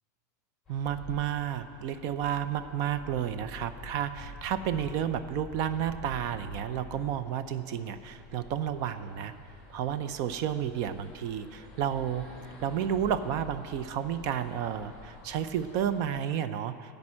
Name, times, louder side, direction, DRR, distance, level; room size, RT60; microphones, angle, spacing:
sound 1, 0.7-16.1, left 2 dB, ahead, 3.2 m, -48 dB
voice 1, 0.7-9.3 9.7-12.3 12.6-16.7, right 9 dB, 45° right, 12 dB, 0.5 m, -31 dB
12.0 x 5.3 x 8.6 m, 2.3 s
supercardioid pair, 155°, 9 cm